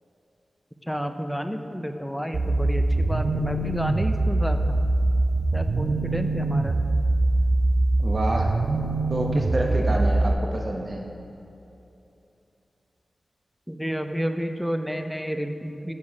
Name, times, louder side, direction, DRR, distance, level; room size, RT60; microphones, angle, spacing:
voice 1, 0.8-4.8 5.5-6.8 13.7-15.9, equal, ahead, 7 dB, 0.4 m, -30 dB
sound 1, 2.3-10.3, right 2 dB, 65° right, 0.3 m, -23 dB
voice 2, 8.0-8.5 9.1-11.0, right 1 dB, 45° right, 0 dB, 0.9 m, -27 dB
7.3 x 4.7 x 4.7 m, 2.9 s
cardioid pair, 60°, 0 cm